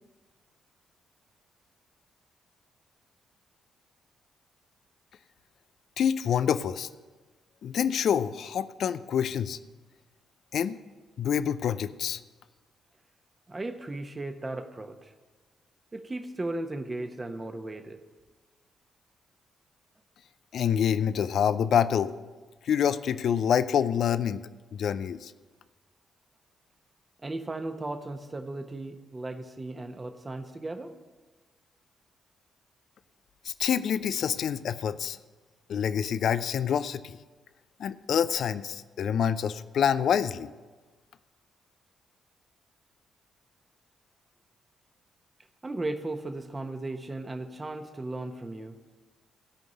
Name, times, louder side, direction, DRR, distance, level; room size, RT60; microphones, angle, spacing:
voice 1, 6.0-6.9 7.6-9.6 10.5-10.8 11.2-12.2 20.5-22.1 22.6-24.4 24.7-25.3 33.4-35.2 35.7-37.2 37.8-40.5, left 8 dB, 65° left, 14 dB, 0.4 m, -27 dB
voice 2, 13.5-15.1 15.9-18.0 27.2-31.0 45.6-48.8, right 2 dB, 30° right, 7 dB, 1.2 m, -36 dB
16.0 x 5.3 x 7.7 m, 1.3 s
hypercardioid pair, 40°, 0 cm